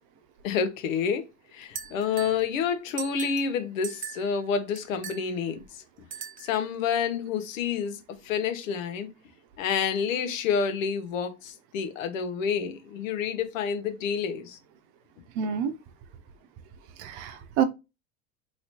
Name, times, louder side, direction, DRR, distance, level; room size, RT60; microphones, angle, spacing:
voice 1, 0.4-5.8 6.4-9.1 9.6-14.6, left 6 dB, 75° left, 0.9 m, -29 dB
sound 1, 1.7-2.4 2.9-3.5 3.8-4.3 4.7-5.2 6.1-6.6, right 9 dB, 20° right, 0.4 m, -39 dB
voice 2, 15.4-15.7 17.0-17.6, right 8 dB, 60° right, 0.7 m, -27 dB
3.0 x 2.9 x 2.8 m
hypercardioid pair, 95°, 39 cm